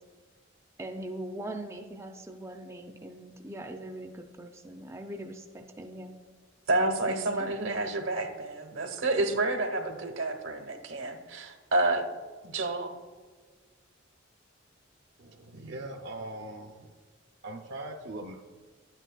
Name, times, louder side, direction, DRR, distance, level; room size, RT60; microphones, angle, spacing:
voice 1, 0.8-6.1 7.1-7.6, right 1 dB, 15° right, 3 dB, 0.4 m, -41 dB
voice 2, 6.7-12.1 12.4-12.9, right 2 dB, 85° right, 4 dB, 1.1 m, -29 dB
voice 3, 15.2-16.9 17.4-18.3, right 2 dB, 60° right, 0 dB, 0.6 m, -41 dB
11.0 x 9.0 x 2.3 m, 1.4 s
head